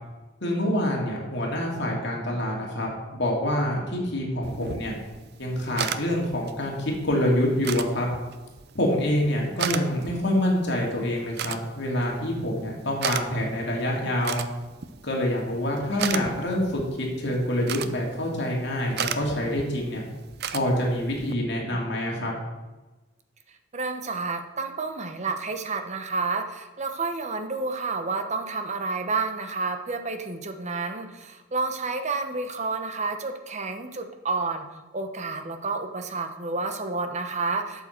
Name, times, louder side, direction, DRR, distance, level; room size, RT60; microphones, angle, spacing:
voice 1, 0.4-4.9 5.4-8.1 8.7-14.4 15.0-20.0 20.5-22.3, left 1 dB, 60° left, -1 dB, 2.5 m, -26 dB
sound 1, 4.4-21.3, right 7 dB, 55° right, 0.5 m, -37 dB
voice 2, 23.7-34.6 34.9-37.9, right 4 dB, 35° right, 7 dB, 1.0 m, -30 dB
12.0 x 6.8 x 4.5 m, 1.2 s
head